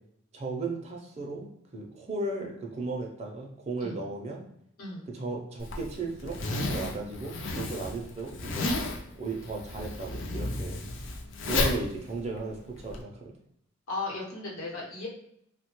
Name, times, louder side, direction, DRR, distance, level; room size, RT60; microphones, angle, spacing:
voice 1, 0.3-1.5 1.7-4.4 5.1-8.7 9.2-10.8 11.4-13.3, right 3 dB, 30° right, 0 dB, 0.4 m, -35 dB
Zipper (clothing), 5.6-13.0, left 2 dB, 60° left, 0.4 m, -32 dB
voice 2, 13.9-15.1, left 2 dB, 75° left, -3 dB, 0.9 m, -36 dB
3.1 x 2.1 x 3.0 m, 0.73 s
head